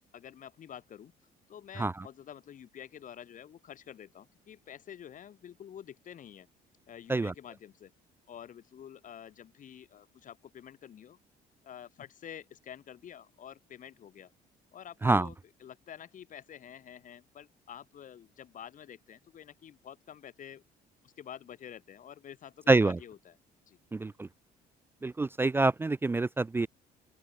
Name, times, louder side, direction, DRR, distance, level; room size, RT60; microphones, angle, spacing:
voice 1, 0.1-1.1 1.5-6.5 6.9-7.9 8.3-11.2 11.6-14.3 14.7-20.6 21.0-23.4 23.7-23.8, left 9 dB, 50° left, 4.1 m, -48 dB
voice 2, 22.7-23.0 23.9-24.3 25.0-26.7, right 3 dB, 15° right, 0.3 m, -26 dB
open air
cardioid pair, 110°, 17 cm